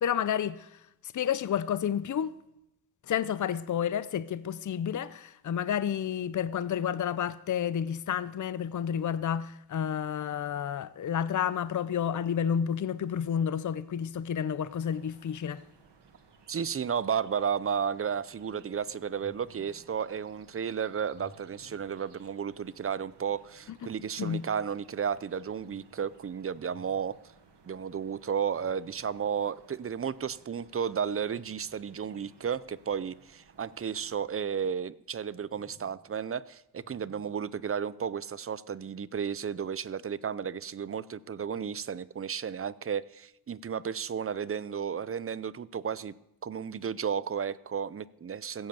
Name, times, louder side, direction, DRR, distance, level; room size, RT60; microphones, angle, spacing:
voice 1, 0.0-2.3 3.0-15.6 23.7-23.8 24.2-24.4, left 8 dB, 45° left, 0.6 m, -30 dB
sound 1, 14.6-34.2, right 5 dB, 90° right, 1.9 m, -60 dB
voice 2, 16.5-27.2 27.7-46.1 46.4-48.7, right 7 dB, 35° right, 0.5 m, -33 dB
sound 2, 19.1-19.9 20.9-22.3 23.0-24.0 25.1-26.1 26.5-27.3 28.5-29.3 30.1-30.5 31.6-32.7 33.5-34.7 35.3-36.1 36.7-37.6, left 2 dB, 65° left, 5.9 m, -59 dB
16.0 x 7.8 x 6.9 m
wide cardioid pair, 110°, 41 cm